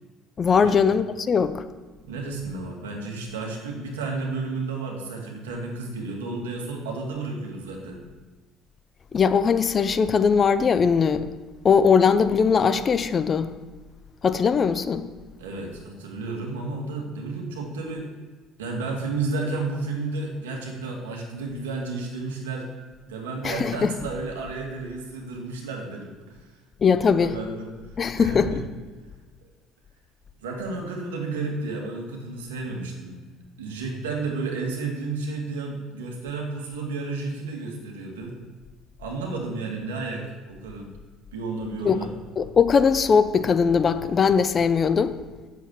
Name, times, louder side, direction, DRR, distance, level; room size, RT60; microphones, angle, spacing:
voice 1, 0.4-1.6 9.1-11.3 11.6-13.5 14.2-15.1 23.4-23.9 26.8-27.3 28.0-28.6 41.8-42.1 42.4-45.1, left 6 dB, 40° left, 0.8 m, -20 dB
voice 2, 2.0-8.0 15.4-18.1 18.6-22.7 23.0-26.4 27.0-27.7 28.1-28.6 30.4-33.2 33.6-38.3 39.0-40.9 41.3-42.1, right 3 dB, 90° right, 2.1 m, -32 dB
8.1 x 7.3 x 7.5 m
hypercardioid pair, 70°, 0 cm